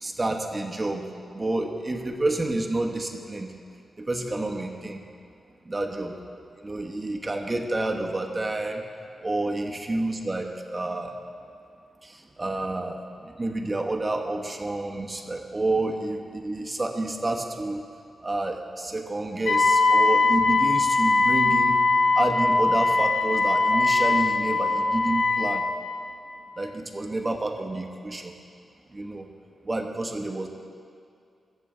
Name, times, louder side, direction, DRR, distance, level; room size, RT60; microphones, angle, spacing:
voice 1, 0.0-3.5 4.0-5.0 5.6-6.1 6.6-8.8 9.2-11.2 12.0-17.8 18.2-21.9 22.2-25.6 26.6-28.3 28.9-29.3 29.6-30.5, right 2 dB, 25° right, 3 dB, 1.1 m, -29 dB
Wind instrument woodwind instrument, 19.5-25.7, left 3 dB, 80° left, 1.5 m, -21 dB
21.5 x 7.5 x 3.8 m, 2.4 s
wide cardioid pair, 100°, 0 cm